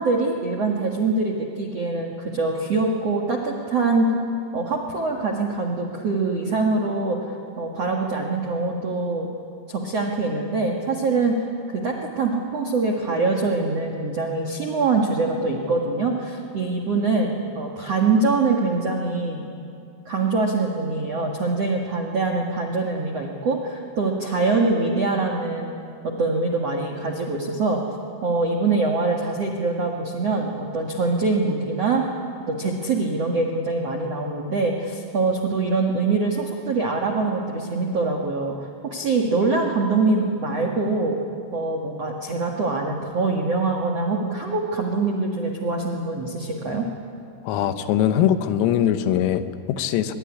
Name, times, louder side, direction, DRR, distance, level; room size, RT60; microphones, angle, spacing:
voice 1, 0.0-4.1 4.5-7.3 7.6-9.3 9.7-11.4 11.7-19.5 20.0-25.7 26.0-27.8 28.2-32.0 32.5-38.5 38.8-41.1 41.5-46.9, right 3 dB, 70° right, 0 dB, 1.5 m, -24 dB
voice 2, 47.5-50.1, left 10 dB, 90° left, 10 dB, 3.8 m, -21 dB
23.5 x 22.0 x 9.8 m, 2.5 s
omnidirectional pair, 5.9 m